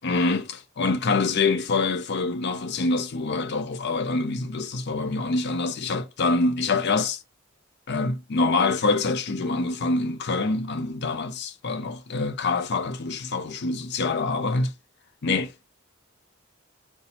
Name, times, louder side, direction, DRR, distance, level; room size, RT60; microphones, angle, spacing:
voice 1, 0.0-7.2 7.9-14.7 15.2-15.6, left 3 dB, 55° left, 0.6 m, -25 dB
4.2 x 2.3 x 4.1 m
head